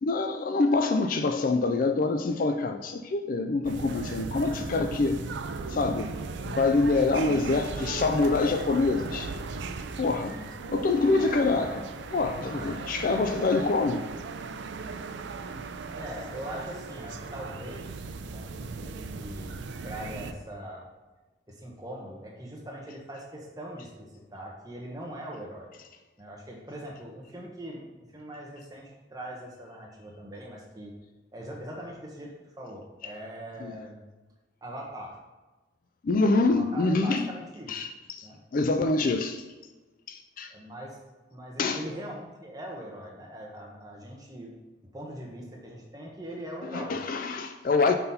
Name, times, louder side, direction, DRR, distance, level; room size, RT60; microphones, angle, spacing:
voice 1, 0.0-5.2 5.7-6.1 6.4-9.3 10.0-10.4 10.7-14.0 33.6-33.7 36.0-37.3 37.7-38.3 38.5-39.4 40.1-40.5 41.6-41.8 46.7-48.0, left 3 dB, 45° left, 0.4 m, -25 dB
sound 1, 3.6-20.3, right 4 dB, 70° right, 0.4 m, -37 dB
voice 2, 15.9-19.6 19.8-20.9 21.5-23.9 24.3-25.7 26.2-30.9 31.3-34.0 34.6-35.2 36.6-37.7 38.2-38.4 40.5-41.0 41.3-44.5 44.9-47.0, right 1 dB, 20° right, 1.1 m, -41 dB
5.8 x 4.1 x 5.5 m
head